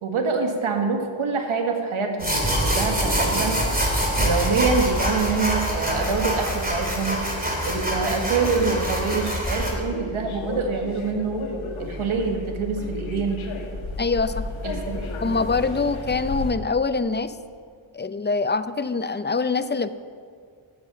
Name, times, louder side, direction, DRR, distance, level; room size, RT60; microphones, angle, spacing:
voice 1, 0.0-3.6 4.2-7.2 7.6-11.4 11.8-13.4 14.6-15.4, right 4 dB, 75° right, 4 dB, 1.6 m, -26 dB
sound 1, 2.2-9.7, equal, 15° right, 3.1 m, -25 dB
sound 2, 2.7-16.5, left 2 dB, 75° left, 1.6 m, -34 dB
voice 2, 14.0-14.5 15.2-17.3 17.9-19.9, left 4 dB, 20° left, 12 dB, 0.6 m, -24 dB
12.5 x 7.5 x 5.9 m, 2.1 s
cardioid pair, 45°, 49 cm